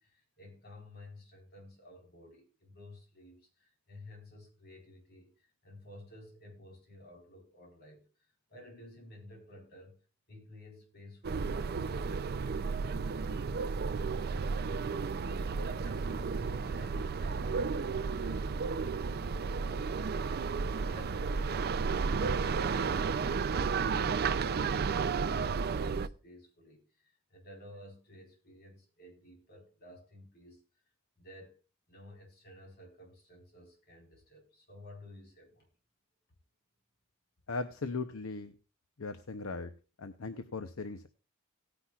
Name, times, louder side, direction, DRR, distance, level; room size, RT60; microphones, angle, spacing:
voice 1, 0.0-8.1 8.5-10.0 10.3-15.0 15.4-22.1 22.4-30.6 31.2-31.6 31.9-35.7, left 1 dB, 50° left, 1 dB, 4.4 m, -53 dB
sound 1, 11.2-26.1, right 5 dB, 45° right, 0.4 m, -32 dB
voice 2, 37.5-38.5 39.0-39.7 40.0-41.1, left 3 dB, 70° left, 9 dB, 0.7 m, -38 dB
17.5 x 9.9 x 2.4 m, 0.32 s
head